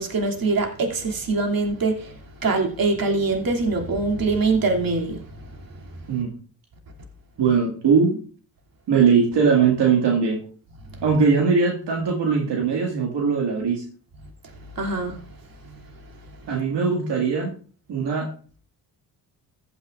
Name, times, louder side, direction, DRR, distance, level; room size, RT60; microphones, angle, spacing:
voice 1, 0.0-5.4 10.9-11.0 14.7-15.4 15.6-15.8 16.3-16.5, right 3 dB, 55° right, 2.8 m, -24 dB
voice 2, 7.4-8.2 8.9-10.4 11.0-13.8 16.5-17.5 17.9-18.3, right 5 dB, 75° right, 2.0 m, -20 dB
14.5 x 9.7 x 2.5 m
supercardioid pair, 55°, 42 cm